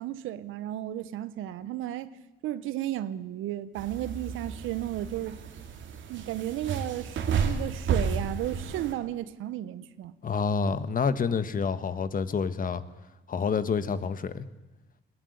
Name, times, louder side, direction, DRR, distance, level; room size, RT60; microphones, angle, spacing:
voice 1, 0.0-2.1 2.4-5.4 6.1-10.1, right 13 dB, 90° right, 1.1 m, -34 dB
sound 1, 3.8-8.9, right 6 dB, 75° right, 2.5 m, -32 dB
voice 2, 10.2-12.8 13.3-14.4, left 5 dB, 45° left, 1.5 m, -28 dB
21.0 x 18.0 x 9.7 m
cardioid pair, 90°, 20 cm